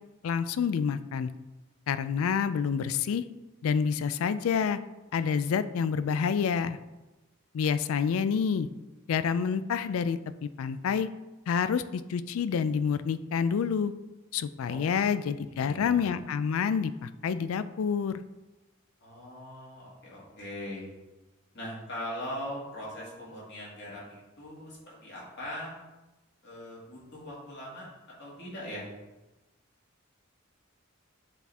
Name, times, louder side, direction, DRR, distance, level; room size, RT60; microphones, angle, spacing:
voice 1, 0.2-1.3 1.9-3.2 3.6-4.8 5.1-6.8 7.5-8.7 9.1-11.1 11.5-13.9 14.3-18.1, left 6 dB, 80° left, 13 dB, 0.3 m, -28 dB
voice 2, 15.1-16.1 19.0-20.9 21.5-25.7 26.4-27.9 28.2-28.9, left 1 dB, 55° left, -5 dB, 2.3 m, -41 dB
8.1 x 4.2 x 3.5 m, 1.1 s
head